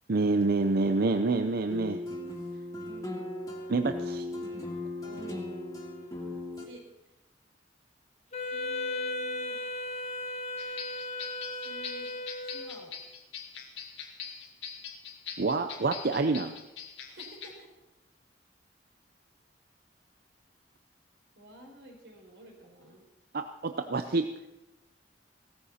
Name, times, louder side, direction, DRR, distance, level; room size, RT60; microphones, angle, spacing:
voice 1, 0.1-2.0 3.7-4.3 15.4-16.5 23.3-24.3, right 3 dB, 55° right, 8 dB, 0.6 m, -27 dB
sound 1, 1.7-6.6, left 2 dB, 20° left, 2.5 m, -37 dB
voice 2, 5.0-5.7 6.6-6.8 8.4-9.6 11.5-12.1 12.4-13.0 17.0-17.7 21.3-23.0, right 1 dB, 85° right, 0 dB, 4.9 m, -50 dB
Wind instrument woodwind instrument, 8.3-12.9, left 2 dB, 40° left, 1.4 m, -36 dB
sound 2, 10.6-17.6, left 7 dB, 75° left, 1.9 m, -43 dB
17.0 x 14.5 x 4.3 m, 0.99 s
head